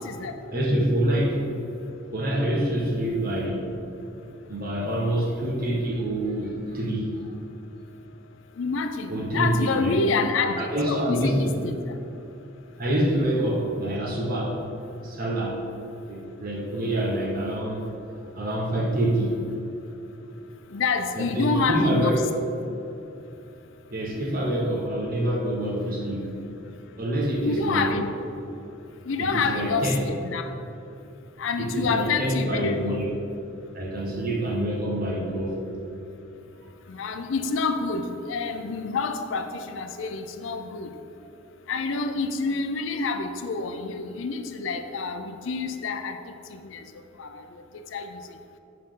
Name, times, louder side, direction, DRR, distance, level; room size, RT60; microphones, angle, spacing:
voice 1, 0.0-0.3 8.6-11.7 20.7-22.2 27.4-28.1 29.1-30.5 31.4-33.0 36.9-40.9 41.7-46.2 46.7-46.8 47.2-47.4 47.9-48.2, left 4 dB, 70° left, 7 dB, 0.5 m, -27 dB
voice 2, 0.5-1.4 1.8-3.6 4.5-7.1 9.1-9.9 10.6-11.6 12.8-14.6 15.0-15.6 16.1-17.9 18.3-19.4 21.2-22.3 23.9-26.3 27.0-27.9 29.2-30.0 31.6-33.1 33.7-35.6, right 1 dB, 50° right, -2 dB, 1.2 m, -26 dB
7.3 x 5.5 x 3.8 m, 2.8 s
head